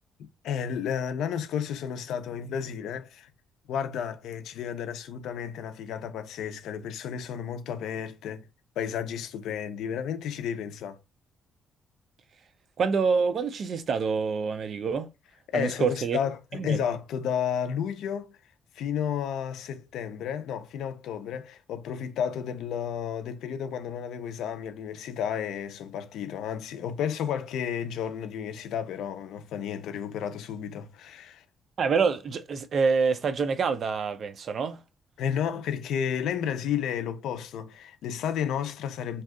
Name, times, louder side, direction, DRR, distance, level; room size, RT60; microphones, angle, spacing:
voice 1, 0.2-3.3 3.7-8.4 8.8-11.0 15.5-18.3 18.8-31.4 35.2-39.2, left 8 dB, 80° left, 0.5 m, -32 dB
voice 2, 12.8-15.1 15.5-16.2 16.5-16.8 31.8-34.8, right 5 dB, 40° right, 0.3 m, -26 dB
2.6 x 2.3 x 3.6 m
cardioid pair, 170°, 0 cm